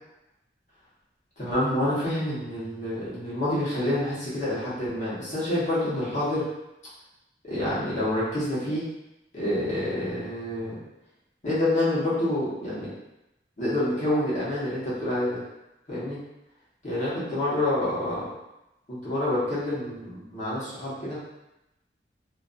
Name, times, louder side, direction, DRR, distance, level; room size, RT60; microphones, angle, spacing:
voice 1, 1.4-6.5 7.4-8.8 9.3-10.8 11.4-12.9 13.6-15.4 15.9-16.2 16.8-18.3 18.9-21.2, left 1 dB, 40° left, -10 dB, 1.1 m, -27 dB
2.5 x 2.4 x 2.5 m, 0.92 s
head